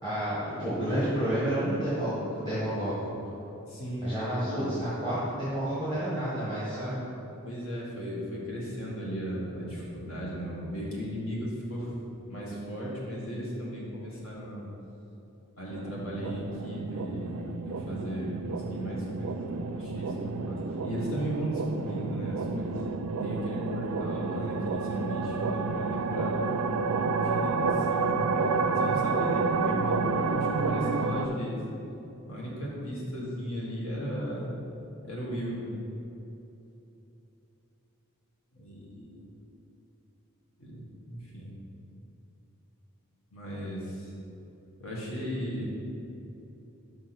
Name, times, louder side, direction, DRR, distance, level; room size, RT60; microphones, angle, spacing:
voice 1, 0.0-3.0 4.0-7.0, right 1 dB, 20° left, -12 dB, 1.6 m, -30 dB
voice 2, 3.7-4.2 4.4-4.7 7.4-11.9 12.3-14.7 15.6-22.8 23.2-28.1 28.7-31.5 32.3-34.5 35.0-35.8 38.5-39.2 40.6-41.5 43.3-44.1 44.8-45.7, equal, 70° left, -4 dB, 1.7 m, -36 dB
sound 1, 15.7-31.3, right 4 dB, 80° right, 0.4 m, -30 dB
5.6 x 4.9 x 6.0 m, 2.9 s
head